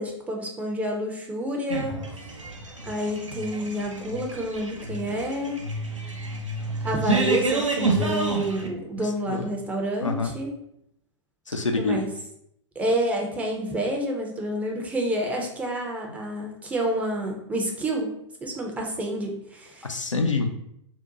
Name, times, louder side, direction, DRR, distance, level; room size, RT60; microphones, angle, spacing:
voice 1, 0.0-1.9 2.8-5.6 6.8-10.5 11.8-12.1 12.8-18.1 18.4-20.0, right 1 dB, 10° right, 0 dB, 0.4 m, -28 dB
sound 1, 1.7-8.7, right 3 dB, 85° right, 0.6 m, -29 dB
voice 2, 11.5-12.0 19.9-20.5, left 3 dB, 85° left, 4 dB, 0.4 m, -25 dB
2.7 x 2.1 x 3.7 m, 0.74 s
figure-of-eight pair, 105°, 16 cm